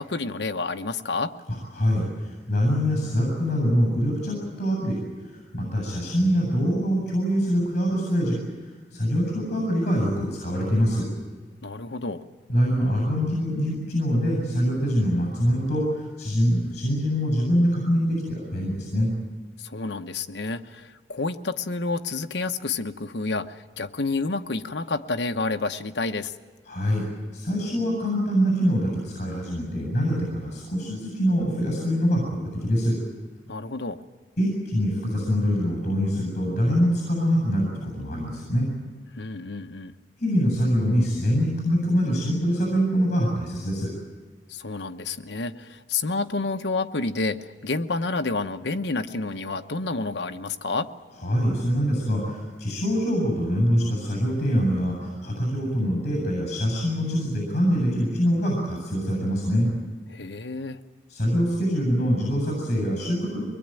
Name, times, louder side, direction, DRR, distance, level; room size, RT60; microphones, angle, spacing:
voice 1, 0.0-1.3 11.6-12.2 19.6-26.3 33.5-34.0 39.1-39.9 44.5-50.9 60.1-60.8, left 3 dB, 75° left, 7 dB, 1.0 m, -29 dB
voice 2, 1.7-5.0 5.2-8.4 8.9-11.1 12.5-19.1 26.7-27.0 27.3-33.0 34.4-38.7 40.2-43.9 51.2-59.7 61.1-63.4, equal, 45° left, 0 dB, 7.7 m, -24 dB
23.5 x 21.0 x 9.1 m, 1.4 s
head